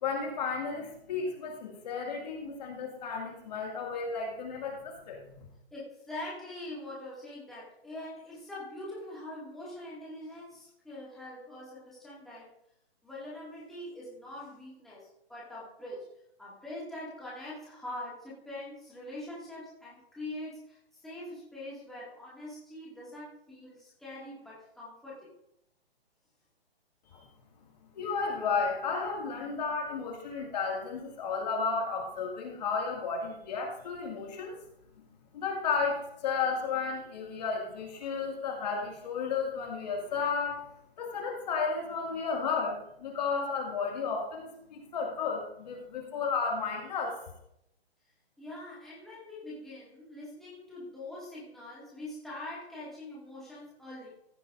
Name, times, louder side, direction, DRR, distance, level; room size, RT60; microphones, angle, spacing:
voice 1, 0.0-5.5 27.1-27.2 27.9-34.6 35.3-40.7 41.0-47.2, left 5 dB, 40° left, 0 dB, 2.2 m, -33 dB
voice 2, 5.7-12.5 13.0-16.1 16.4-20.8 21.0-25.3 48.4-54.1, left 1 dB, ahead, -8 dB, 2.1 m, -43 dB
15.0 x 8.3 x 2.6 m, 0.76 s
hypercardioid pair, 160°, 32 cm